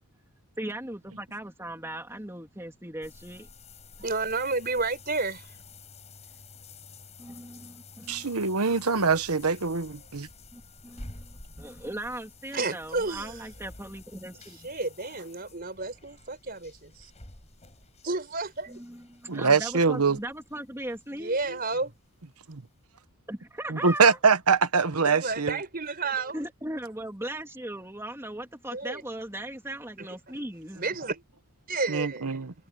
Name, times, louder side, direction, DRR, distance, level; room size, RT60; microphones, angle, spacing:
voice 1, 0.6-3.5 7.2-8.5 10.5-14.7 18.7-21.4 23.3-24.2 26.3-30.8, right 1 dB, 10° right, 2.8 m, -38 dB
sound 1, 3.0-21.7 22.0-22.1 22.6-22.7, left 3 dB, 30° left, 6.8 m, -50 dB
voice 2, 4.0-5.6 12.5-13.5 14.3-17.1 18.0-18.8 21.2-21.9 25.0-26.4 28.7-29.0 30.3-30.4 30.7-31.2 31.7-32.4, right 3 dB, 40° right, 4.9 m, -31 dB
voice 3, 8.1-10.3 19.3-20.2 22.5-22.6 23.7-25.5 31.9-32.5, right 5 dB, 90° right, 1.3 m, -23 dB
head